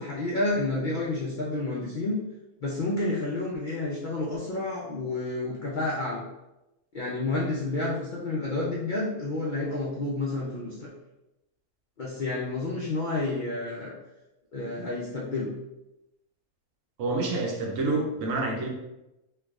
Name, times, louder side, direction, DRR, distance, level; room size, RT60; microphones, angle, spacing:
voice 1, 0.0-2.2 2.6-6.2 6.9-10.9 12.0-14.0 14.5-15.5, left 2 dB, 80° left, -5 dB, 0.4 m, -30 dB
voice 2, 17.0-18.7, right 2 dB, 65° right, 0 dB, 0.9 m, -28 dB
4.4 x 2.3 x 2.3 m, 0.94 s
omnidirectional pair, 1.6 m